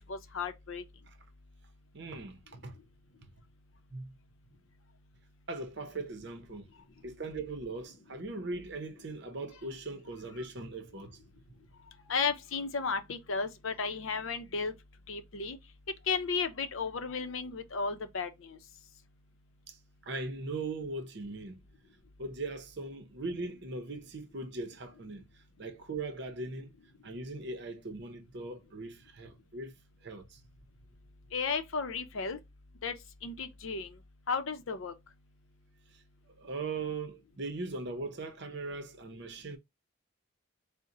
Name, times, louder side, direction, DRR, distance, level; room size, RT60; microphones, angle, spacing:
voice 1, 0.1-0.8 12.1-14.7 15.1-15.6 16.1-18.6 31.3-32.4 32.8-33.0 33.2-33.9 34.3-34.9, left 5 dB, 70° left, 0.6 m, -34 dB
voice 2, 1.9-2.8 3.9-4.1 5.5-6.6 7.0-11.2 19.7-19.8 20.0-21.6 22.2-25.3 25.6-26.7 27.0-29.7 30.0-30.4 36.4-39.6, right 3 dB, 55° right, 0.7 m, -39 dB
4.1 x 2.1 x 3.7 m
head